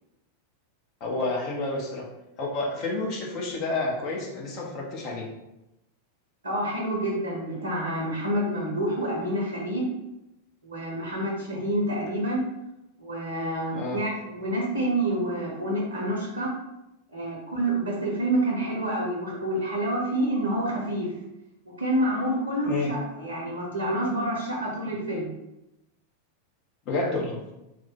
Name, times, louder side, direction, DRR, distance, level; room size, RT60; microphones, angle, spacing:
voice 1, 1.0-2.1 2.4-5.3 13.7-14.0 22.6-22.9 26.9-27.4, left 2 dB, 40° left, -1 dB, 0.8 m, -29 dB
voice 2, 6.4-9.9 10.6-12.4 13.0-16.5 17.1-21.1 21.8-25.3, right 1 dB, 75° right, -3 dB, 0.7 m, -28 dB
3.1 x 2.1 x 3.6 m, 0.93 s
figure-of-eight pair, 90°, 0 cm